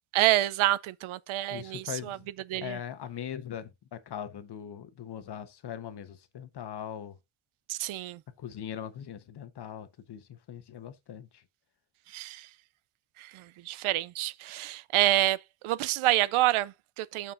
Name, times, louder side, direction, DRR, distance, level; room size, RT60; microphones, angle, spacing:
voice 1, 0.1-2.2 2.5-2.8 7.7-8.2 12.1-12.5 13.2-17.3, right 15 dB, 75° right, 0.6 m, -28 dB
voice 2, 1.5-2.3 2.6-7.2 8.4-11.4, left 9 dB, 50° left, 1.1 m, -40 dB
13.0 x 4.6 x 2.5 m
cardioid pair, 145°, 50 cm